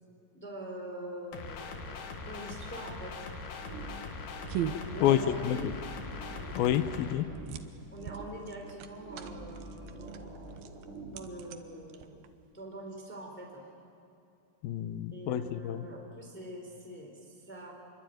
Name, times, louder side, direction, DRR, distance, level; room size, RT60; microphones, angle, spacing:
voice 1, 0.3-3.2 4.9-6.0 7.9-10.6 11.1-12.2 12.5-13.7 15.1-17.7, right 1 dB, 5° left, 0 dB, 3.5 m, -44 dB
sound 1, 1.3-7.1, left 4 dB, 60° left, 3.2 m, -41 dB
sound 2, 3.0-12.5, right 8 dB, 75° right, 2.9 m, -42 dB
sound 3, 3.6-11.3, right 2 dB, 55° right, 5.2 m, -46 dB
voice 2, 5.0-5.7 6.6-7.3 14.6-15.8, left 11 dB, 80° left, 13 dB, 2.7 m, -28 dB
27.0 x 22.5 x 9.3 m, 2.7 s
omnidirectional pair, 4.4 m